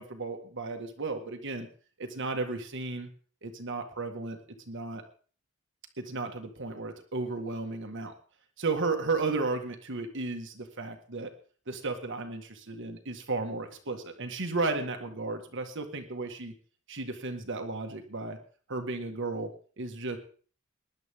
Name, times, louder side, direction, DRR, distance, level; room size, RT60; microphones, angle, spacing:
voice 1, 0.0-1.7 2.0-3.1 3.4-4.4 4.7-5.0 6.0-8.1 8.6-11.3 11.7-16.5 16.9-18.4 18.7-19.5 19.8-20.2, right 3 dB, 60° right, 5 dB, 1.7 m, -34 dB
19.5 x 10.5 x 3.6 m, 0.42 s
head